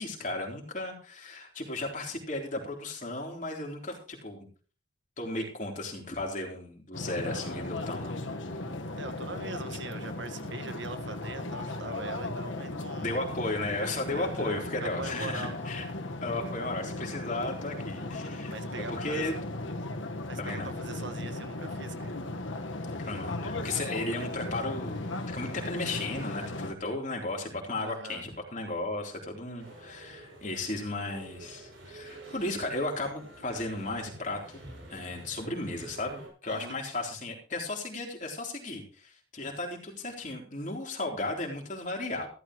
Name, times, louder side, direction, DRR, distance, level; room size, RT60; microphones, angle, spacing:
voice 1, 0.0-4.5 5.2-8.2 13.0-15.8 16.2-18.5 18.9-19.4 20.4-20.7 23.0-42.3, left 2 dB, 40° left, 1 dB, 3.8 m, -35 dB
sound 1, 6.9-26.7, left 2 dB, 80° left, 1.5 m, -37 dB
voice 2, 9.0-13.3 14.1-15.7 18.5-19.3 20.3-22.1 27.8-28.2 36.5-36.8, right 3 dB, 70° right, 8 dB, 1.7 m, -42 dB
sound 2, 29.6-36.3, right 2 dB, 90° right, 7.6 m, -48 dB
15.0 x 13.5 x 3.2 m, 0.39 s
head